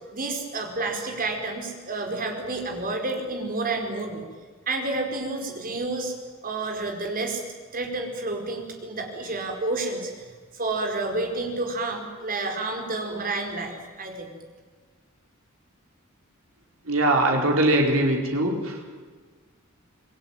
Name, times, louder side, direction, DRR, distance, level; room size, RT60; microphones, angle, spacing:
voice 1, 0.1-4.2 4.7-6.1 6.4-7.4 7.7-10.2 10.5-14.3, right 2 dB, 40° right, 4 dB, 4.8 m, -30 dB
voice 2, 16.9-18.7, right 1 dB, 70° right, 1 dB, 4.6 m, -21 dB
28.0 x 20.5 x 9.2 m, 1.5 s
head